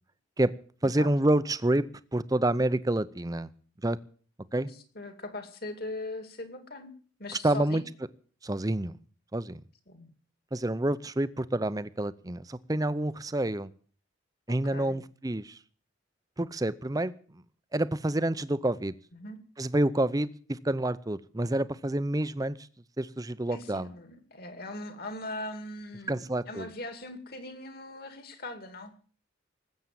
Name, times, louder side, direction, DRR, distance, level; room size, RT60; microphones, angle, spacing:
voice 1, 0.8-1.8 2.1-3.5 3.8-4.0 4.5-4.7 7.4-7.8 8.4-8.9 9.3-9.6 10.5-13.7 14.5-15.6 16.4-17.1 17.7-18.9 19.6-22.6 23.0-23.9 26.1-26.7, right 1 dB, 20° right, 15 dB, 0.6 m, -28 dB
voice 2, 4.5-6.9 7.2-7.8 9.9-10.1 14.7-15.0 19.1-19.4 23.5-28.9, left 2 dB, 50° left, 8 dB, 2.4 m, -40 dB
19.5 x 8.4 x 7.6 m, 0.44 s
head